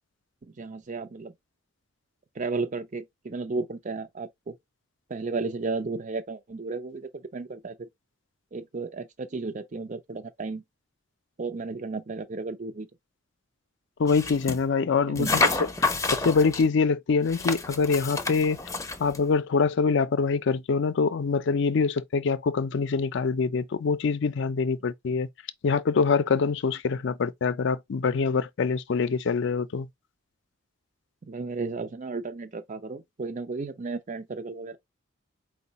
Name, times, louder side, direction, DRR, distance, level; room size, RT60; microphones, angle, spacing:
voice 1, 0.6-1.3 2.4-4.5 5.1-7.8 8.5-10.6 11.4-12.9 15.1-15.4 31.3-34.8, right 3 dB, 40° right, 0.5 m, -33 dB
voice 2, 14.0-18.6 19.0-25.3 25.6-29.9, left 5 dB, 60° left, 0.4 m, -25 dB
sound 1, 14.1-14.6 15.2-16.7 17.3-19.2, left 3 dB, 15° left, 0.6 m, -28 dB
4.6 x 2.1 x 4.0 m
head